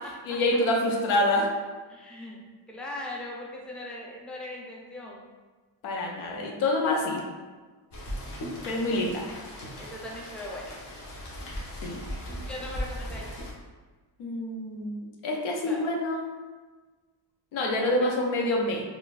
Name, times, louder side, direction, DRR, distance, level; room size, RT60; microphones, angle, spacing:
voice 1, 0.3-1.5 5.8-7.2 8.7-9.2 11.8-12.0 14.2-16.3 17.5-18.8, left 1 dB, 85° left, 0 dB, 0.7 m, -27 dB
voice 2, 1.9-2.4 2.7-5.2 8.6-9.2 9.8-10.8 12.2-13.3 15.7-15.8 17.8-18.1, left 1 dB, ahead, -2 dB, 0.4 m, -40 dB
Rain, 7.9-13.5, equal, 60° left, 1.0 m, -38 dB
3.7 x 2.4 x 2.4 m, 1.3 s
cardioid pair, 90°, 47 cm